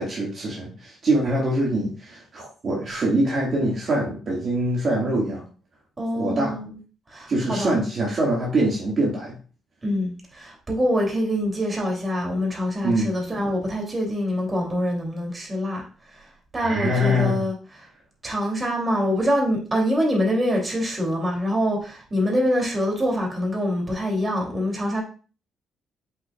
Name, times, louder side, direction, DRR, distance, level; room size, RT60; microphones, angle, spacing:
voice 1, 0.0-5.4 6.1-6.6 7.3-9.4 12.8-13.1 16.6-17.4, right 1 dB, 50° right, 2.0 m, -24 dB
voice 2, 6.0-6.8 7.1-7.8 9.8-15.8 16.1-16.3 16.5-17.9 18.2-25.0, equal, 25° right, 2.9 m, -25 dB
7.9 x 5.8 x 2.4 m
cardioid pair, 90°, 0 cm